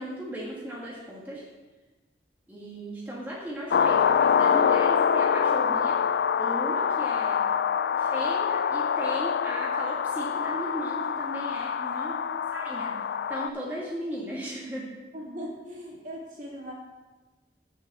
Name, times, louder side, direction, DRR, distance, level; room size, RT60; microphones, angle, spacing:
voice 1, 0.0-1.4 2.5-6.0 6.4-7.5 8.0-12.2 12.5-14.9, equal, 10° right, -6 dB, 1.7 m, -36 dB
sound 1, 3.7-13.5, left 7 dB, 70° left, 0.3 m, -25 dB
voice 2, 12.0-12.6 15.1-16.7, equal, 45° right, -3 dB, 2.2 m, -40 dB
7.2 x 6.3 x 7.5 m, 1.2 s
head